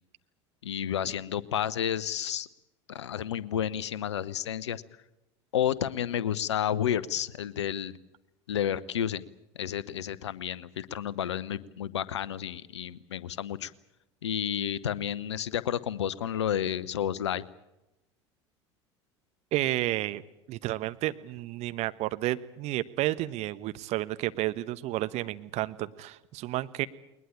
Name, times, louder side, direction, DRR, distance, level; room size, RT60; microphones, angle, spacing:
voice 1, 0.6-2.5 2.9-4.8 5.5-8.0 8.5-9.2 9.5-13.7 14.2-17.4, left 9 dB, 75° left, 19 dB, 0.9 m, -31 dB
voice 2, 19.5-20.2 20.5-26.9, right 16 dB, 50° right, 13 dB, 1.0 m, -31 dB
20.5 x 20.5 x 8.7 m, 0.93 s
figure-of-eight pair, 70°, 15 cm